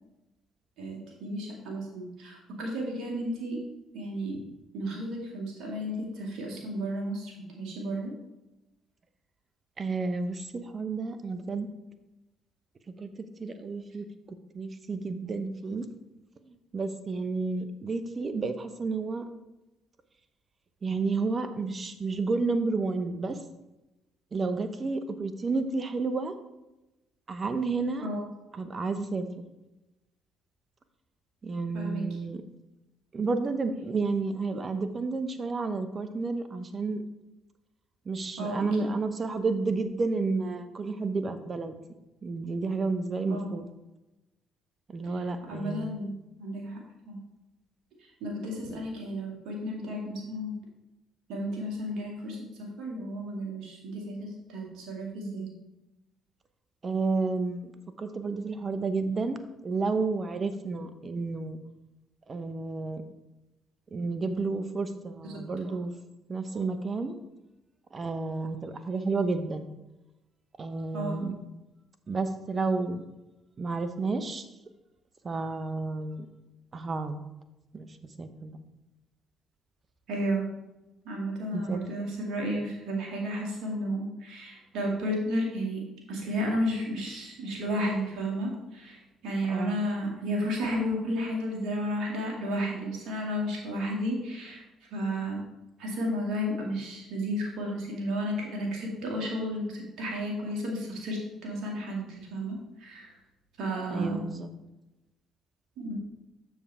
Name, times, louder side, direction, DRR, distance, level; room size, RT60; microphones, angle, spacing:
voice 1, 0.8-3.6 3.9-4.5 4.7-8.1 28.0-28.2 31.7-32.0 38.4-38.9 43.3-43.5 45.5-46.1 46.4-46.8 47.1-47.2 48.0-50.5 51.3-55.5 65.6-65.8 70.9-71.2 80.1-80.5 81.0-85.8 86.1-94.6 94.9-95.4 95.8-103.2 103.6-104.3 105.8-106.0, equal, 70° right, -1 dB, 2.3 m, -33 dB
voice 2, 9.8-11.7 13.0-14.1 14.5-15.9 16.5-19.3 20.8-23.4 24.3-26.3 27.3-28.1 28.5-29.4 31.4-32.4 33.1-37.0 38.0-41.7 42.2-43.7 44.9-46.0 56.8-57.7 58.0-61.6 62.3-63.0 63.9-65.9 66.3-67.1 67.9-69.7 70.6-71.4 72.1-73.0 73.6-74.5 75.2-76.3 76.7-77.2 77.7-77.9 78.2-78.6 81.5-81.8 89.5-89.8 103.9-104.5, right 3 dB, 40° right, 10 dB, 0.9 m, -31 dB
7.3 x 6.9 x 3.6 m, 0.99 s
hypercardioid pair, 60°, 0 cm